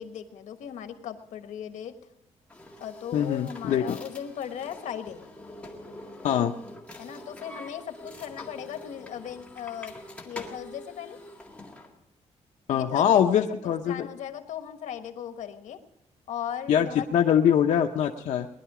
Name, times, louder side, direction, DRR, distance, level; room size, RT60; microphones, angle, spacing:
voice 1, 0.0-1.9 2.8-5.2 7.0-9.9 10.2-11.2 12.7-15.8 16.3-17.1, left 9 dB, 90° left, 8 dB, 1.3 m, -37 dB
sound 1, 2.5-11.9, left 1 dB, 10° left, 1.9 m, -45 dB
voice 2, 3.1-4.0 6.2-6.5 12.7-14.1 16.7-18.5, left 9 dB, 70° left, 3 dB, 0.7 m, -23 dB
19.5 x 11.0 x 4.9 m, 0.88 s
cardioid pair, 155°, 12 cm